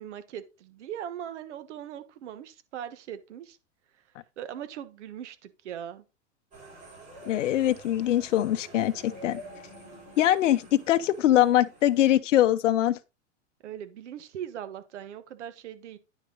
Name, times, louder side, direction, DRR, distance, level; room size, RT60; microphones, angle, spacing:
voice 1, 0.0-3.6 4.4-6.0 13.6-16.0, right 10 dB, 70° right, 1.4 m, -40 dB
sound 1, 6.5-12.2, right 1 dB, 20° right, 4.0 m, -48 dB
voice 2, 7.2-9.4 10.2-13.0, left 12 dB, 80° left, 0.8 m, -23 dB
9.8 x 6.1 x 3.9 m
supercardioid pair, 150°, 37 cm